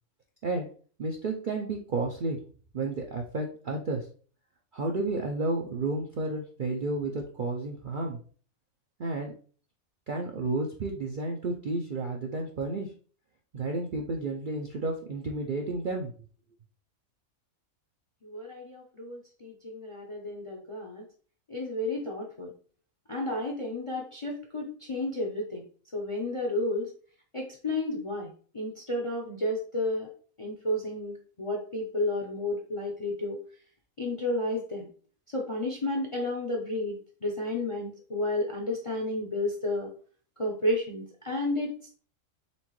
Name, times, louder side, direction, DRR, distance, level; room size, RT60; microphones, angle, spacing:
voice 1, 1.0-2.4 2.7-4.1 4.7-8.2 9.0-9.3 10.1-12.9 13.5-16.1, right 2 dB, 60° right, 1 dB, 0.5 m, -31 dB
voice 2, 18.2-21.0 21.5-22.5 23.1-25.6 25.9-26.9 27.3-28.3 28.5-30.1 30.4-31.1 31.4-33.4 34.0-34.8 35.3-39.9 40.4-41.7, left 1 dB, 40° left, 1 dB, 0.5 m, -31 dB
4.3 x 3.5 x 3.0 m, 0.42 s
omnidirectional pair, 1.5 m